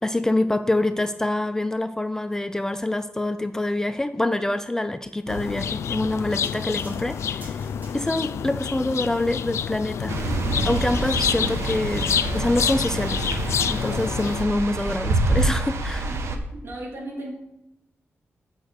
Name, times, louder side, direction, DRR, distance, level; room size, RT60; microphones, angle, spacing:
voice 1, 0.0-7.7 7.9-10.2 10.6-12.1 12.3-13.3 13.7-16.1, left 1 dB, 10° left, 10 dB, 0.4 m, -26 dB
sound 1, 5.3-14.4, left 8 dB, 80° left, 0.3 m, -28 dB
sound 2, 6.4-8.4 9.1-9.2, right 2 dB, 40° right, 2.4 m, -49 dB
sound 3, 10.1-16.4, right 2 dB, 80° right, 1.1 m, -26 dB
voice 2, 16.0-17.3, right 1 dB, 60° right, -2 dB, 3.2 m, -36 dB
8.6 x 6.3 x 4.9 m, 0.92 s
wide cardioid pair, 130°, 5 cm